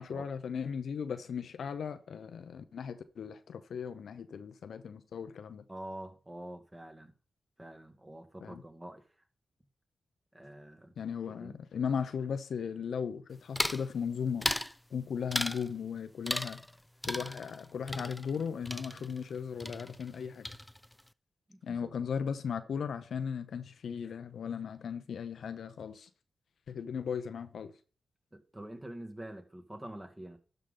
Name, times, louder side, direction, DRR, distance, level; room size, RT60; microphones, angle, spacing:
voice 1, 0.0-5.6 8.4-8.6 11.0-14.5 14.9-16.6 17.0-20.6 21.6-26.1 26.7-27.7, left 7 dB, 75° left, 0.7 m, -37 dB
voice 2, 5.7-7.1 7.6-9.0 10.3-10.9 11.3-11.6 21.5-21.9 28.3-30.4, right 1 dB, 20° right, 1.9 m, -46 dB
sound 1, 13.6-13.9 14.4-14.8 15.3-15.7 16.3-16.8 17.0-19.4 19.6-20.2 20.5-21.0, equal, 5° left, 0.4 m, -36 dB
12.0 x 5.1 x 3.9 m
supercardioid pair, 50°, 0 cm